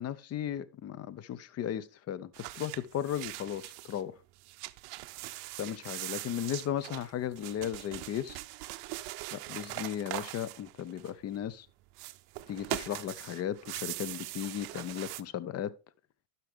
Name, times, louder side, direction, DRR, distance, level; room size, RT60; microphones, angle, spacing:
voice 1, 0.0-4.1 5.6-8.4 9.3-11.7 12.5-15.7, left 10 dB, 35° left, 0.7 m, -36 dB
sound 1, 2.3-4.0 4.4-11.4 11.9-15.2, right 18 dB, 60° right, 0.6 m, -41 dB
11.5 x 5.9 x 3.3 m
supercardioid pair, 105°, 43 cm